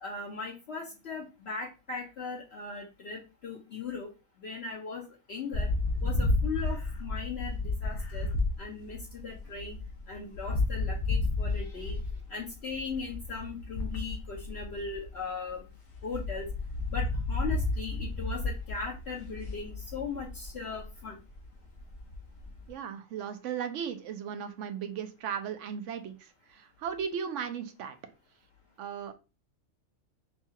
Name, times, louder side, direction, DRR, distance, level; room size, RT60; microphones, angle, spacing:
voice 1, 0.0-4.1 4.4-5.7 6.0-8.3 8.6-9.8 10.1-12.0 12.3-15.6 16.0-16.5 16.9-21.2, left 4 dB, 55° left, -2 dB, 1.0 m, -38 dB
sound 1, 5.5-15.6 15.9-22.7, left 2 dB, 85° left, 1.6 m, -32 dB
voice 2, 22.7-28.0 28.8-29.1, right 7 dB, 70° right, 8 dB, 0.9 m, -36 dB
5.5 x 2.3 x 2.7 m, 0.30 s
omnidirectional pair, 1.4 m